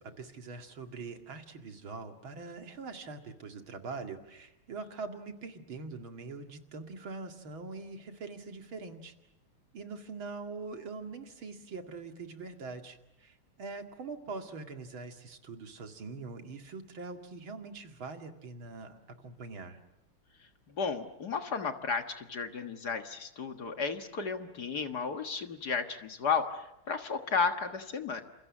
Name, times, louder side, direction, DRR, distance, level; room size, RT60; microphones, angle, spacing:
voice 1, 0.0-9.1 9.7-19.8, right 4 dB, 65° right, 5 dB, 2.9 m, -43 dB
voice 2, 20.7-28.2, left 5 dB, 50° left, 7 dB, 1.9 m, -33 dB
29.0 x 28.0 x 7.3 m, 0.88 s
omnidirectional pair, 2.4 m